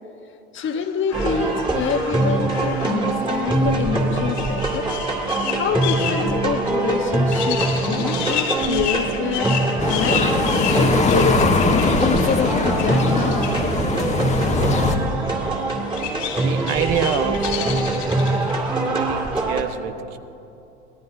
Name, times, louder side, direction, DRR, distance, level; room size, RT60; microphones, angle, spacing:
voice 1, 0.5-4.9 5.6-9.6 9.9-10.2 10.8-13.4, left 6 dB, 35° left, 8 dB, 1.0 m, -26 dB
sound 1, 0.6-13.9 14.4-18.7 19.1-19.4, left 8 dB, 90° left, 3.1 m, -32 dB
sound 2, 1.1-19.6, right 2 dB, 15° right, 2.3 m, -23 dB
sound 3, 9.8-15.0, left 3 dB, 20° left, 1.5 m, -21 dB
voice 2, 16.4-18.0 18.9-20.2, right 8 dB, 60° right, 8 dB, 1.2 m, -26 dB
25.0 x 17.0 x 2.7 m, 2.9 s
hypercardioid pair, 90°, 35 cm